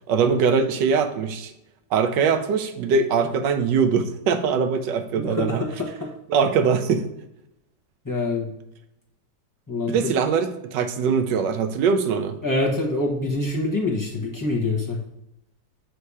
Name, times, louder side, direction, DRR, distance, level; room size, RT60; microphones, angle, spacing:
voice 1, 0.1-1.5 1.9-5.6 6.3-7.1 9.9-12.4, right 6 dB, 75° right, 8 dB, 1.2 m, -22 dB
voice 2, 8.0-8.5 9.7-10.0 12.4-15.0, left 2 dB, 15° left, -4 dB, 0.6 m, -25 dB
7.6 x 2.8 x 4.7 m, 0.85 s
omnidirectional pair, 2.0 m